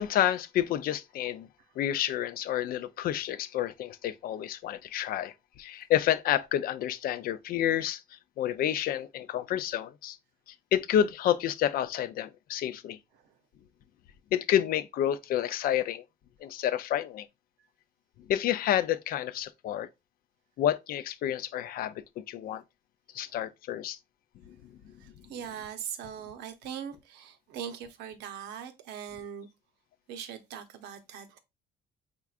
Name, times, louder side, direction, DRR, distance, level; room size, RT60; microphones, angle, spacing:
voice 1, 0.0-1.5 1.8-10.2 10.5-13.0 14.3-16.0 16.4-17.3 18.3-19.9 20.6-22.6 23.1-24.0 24.4-24.6 24.9-25.0, left 11 dB, 60° left, 0.4 m, -29 dB
voice 2, 25.0-29.5 30.1-31.4, right 8 dB, 85° right, 0.7 m, -41 dB
4.5 x 3.6 x 2.4 m
cardioid pair, 110°, 17 cm